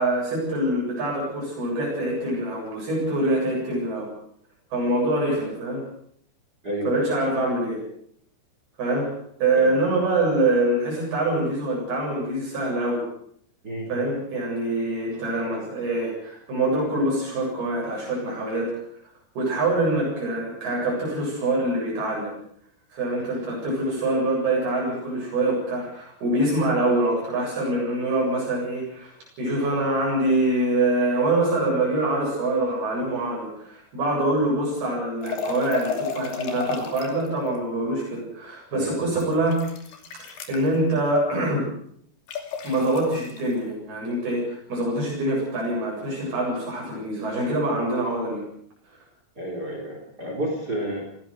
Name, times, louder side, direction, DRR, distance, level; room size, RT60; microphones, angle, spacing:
voice 1, 0.0-4.1 4.7-5.8 6.8-7.8 8.8-9.1 9.4-13.0 13.9-18.7 19.4-22.3 22.9-29.1 29.4-39.6 40.5-41.7 42.6-48.4, right 1 dB, 75° right, -4 dB, 9.8 m, -25 dB
voice 2, 6.6-7.1 9.6-9.7 13.6-13.9 38.7-38.9 49.4-51.0, right 1 dB, 25° right, 2 dB, 4.3 m, -30 dB
sound 1, 35.2-37.3 39.1-40.7 42.3-43.4, left 5 dB, 85° left, 4.7 m, -32 dB
21.0 x 17.0 x 8.0 m, 0.67 s
omnidirectional pair, 4.5 m